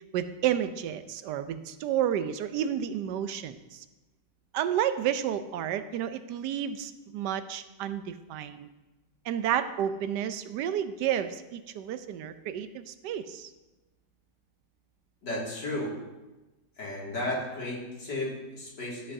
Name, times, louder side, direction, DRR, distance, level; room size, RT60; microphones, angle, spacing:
voice 1, 0.1-3.8 4.5-8.7 9.3-13.5, right 10 dB, 85° right, 11 dB, 1.2 m, -31 dB
voice 2, 15.2-16.0 16.8-19.1, left 1 dB, 85° left, -5 dB, 3.0 m, -34 dB
13.0 x 7.6 x 2.7 m, 1.1 s
omnidirectional pair, 1.8 m